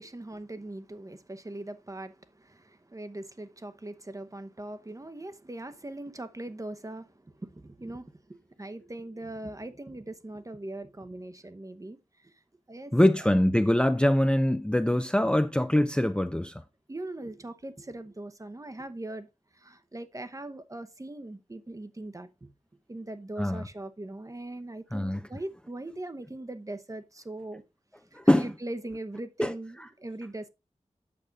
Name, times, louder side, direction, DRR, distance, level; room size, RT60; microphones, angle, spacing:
voice 1, 0.0-12.3 12.7-13.3 16.9-22.5 22.9-27.6 28.1-30.5, right 1 dB, 25° right, 0.9 m, -40 dB
voice 2, 12.9-16.5 23.4-23.7 24.9-25.2 28.1-28.4 29.4-29.5, left 1 dB, 10° left, 0.5 m, -23 dB
8.7 x 6.6 x 4.0 m
wide cardioid pair, 90°, 12 cm